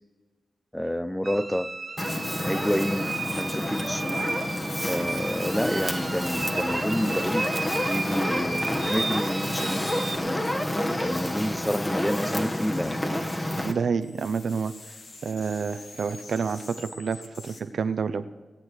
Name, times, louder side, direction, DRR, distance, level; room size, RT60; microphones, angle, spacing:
voice 1, 0.7-1.7 2.4-4.0 4.9-7.5 7.9-10.0 11.0-13.0, equal, 5° left, 13 dB, 0.7 m, -29 dB
sound 1, 1.2-10.2, right 3 dB, 55° right, 1.9 m, -34 dB
Fire, 2.0-13.7, left 1 dB, 25° left, 1.9 m, -29 dB
sound 2, 11.6-13.8 14.0-17.6, left 3 dB, 80° left, 2.0 m, -47 dB
voice 2, 13.6-14.7 15.2-18.3, right 5 dB, 80° right, 10 dB, 0.9 m, -28 dB
18.5 x 8.9 x 6.5 m, 1.3 s
cardioid pair, 60°, 0 cm